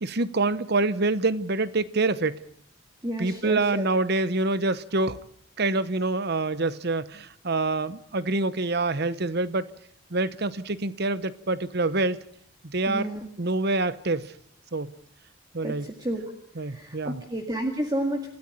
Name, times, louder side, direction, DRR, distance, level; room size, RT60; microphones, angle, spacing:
voice 1, 0.0-2.4 3.2-5.2 5.6-9.7 10.1-12.2 12.6-13.1 13.4-14.3 14.7-14.9 15.5-15.9 16.6-17.2, right 2 dB, 50° right, 15 dB, 0.9 m, -26 dB
voice 2, 3.0-3.9 12.9-13.3 15.6-16.2 16.6-18.3, right 1 dB, 20° right, 3 dB, 2.0 m, -31 dB
27.5 x 14.0 x 9.1 m, 0.70 s
head